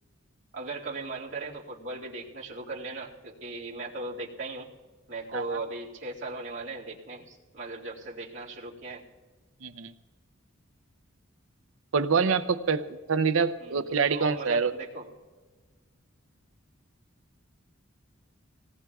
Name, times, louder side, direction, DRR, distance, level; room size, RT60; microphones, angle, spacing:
voice 1, 0.5-4.7 5.1-9.1 13.6-15.1, right 2 dB, 65° right, -5 dB, 2.1 m, -38 dB
voice 2, 9.6-9.9 11.9-14.7, right 5 dB, 80° right, 12 dB, 0.6 m, -26 dB
25.0 x 18.5 x 2.3 m, 1.4 s
head